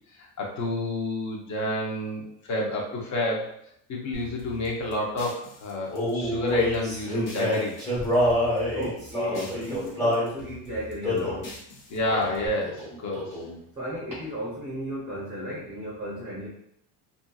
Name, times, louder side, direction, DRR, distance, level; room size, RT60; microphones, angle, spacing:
voice 1, 0.1-3.5 3.9-7.7 11.9-13.4, left 1 dB, 40° left, -2 dB, 0.8 m, -29 dB
sound 1, 4.1-7.8 8.0-9.9 10.1-12.5, left 1 dB, 65° left, 1.0 m, -45 dB
Male singing, 5.9-10.3 11.0-11.5 12.1-12.4 12.6-13.6, left 1 dB, 10° left, 1.1 m, -26 dB
voice 2, 8.7-11.5 13.8-16.5, equal, 15° right, -6 dB, 0.6 m, -34 dB
2.6 x 2.6 x 2.3 m, 0.72 s
cardioid pair, 135°, 42 cm